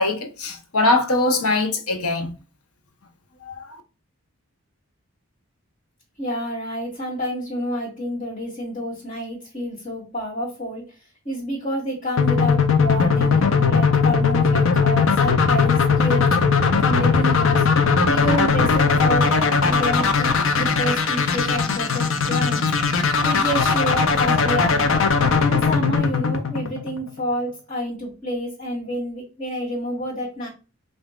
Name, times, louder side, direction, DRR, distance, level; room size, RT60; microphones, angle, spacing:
voice 1, 0.0-2.3 3.4-3.6, left 2 dB, 90° left, 0.9 m, -21 dB
voice 2, 6.2-10.9 11.3-16.4 16.8-17.7 18.1-22.6 23.2-24.9 25.4-30.5, equal, 40° left, 1.7 m, -28 dB
sound 1, 12.2-27.1, left 5 dB, 60° left, 0.5 m, -19 dB
sound 2, 16.1-26.1, left 2 dB, 5° left, 1.4 m, -35 dB
5.6 x 2.5 x 2.4 m
head